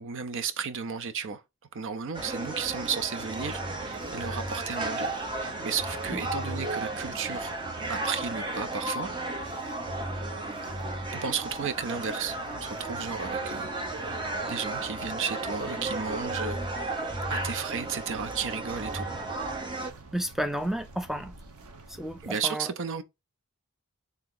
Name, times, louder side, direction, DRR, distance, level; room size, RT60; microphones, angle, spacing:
voice 1, 0.0-1.4 1.7-5.1 5.4-7.6 7.9-9.1 11.1-13.7 14.5-16.6 17.3-19.1 22.2-23.0, right 6 dB, 60° right, 0.6 m, -33 dB
sound 1, 2.1-19.9, right 2 dB, 20° right, 0.8 m, -34 dB
sound 2, 3.3-22.3, right 3 dB, 75° right, 0.9 m, -50 dB
voice 2, 20.1-21.3 22.0-22.7, right 1 dB, ahead, 0.4 m, -31 dB
3.5 x 2.8 x 3.8 m
head